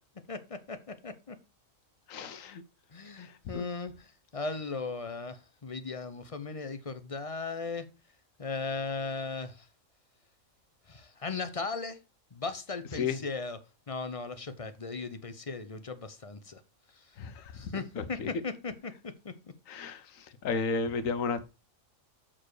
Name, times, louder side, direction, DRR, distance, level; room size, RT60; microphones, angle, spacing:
voice 1, 0.3-1.4 2.9-7.9 8.4-9.7 10.9-12.0 12.3-13.6 13.9-16.6 17.5-19.3, left 4 dB, 30° left, 0.7 m, -37 dB
voice 2, 2.1-2.6 3.2-3.3 3.5-3.6 13.0-13.2 17.2-17.4 18.0-18.3 19.7-20.0 20.4-21.4, left 5 dB, 80° left, 1.3 m, -32 dB
7.4 x 4.5 x 4.8 m
omnidirectional pair, 1.4 m